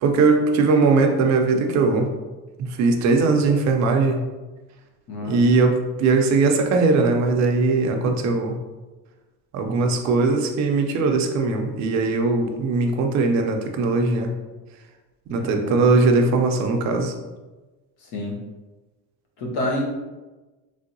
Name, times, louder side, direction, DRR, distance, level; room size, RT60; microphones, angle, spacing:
voice 1, 0.0-2.1 2.8-4.2 5.2-8.6 9.5-14.3 15.3-17.1, right 3 dB, 45° right, 3 dB, 0.4 m, -20 dB
voice 2, 5.1-5.5 15.3-15.8 18.0-18.4 19.4-19.9, left 1 dB, 70° left, -1 dB, 0.9 m, -28 dB
3.3 x 2.7 x 2.6 m, 1.2 s
cardioid pair, 155°, 39 cm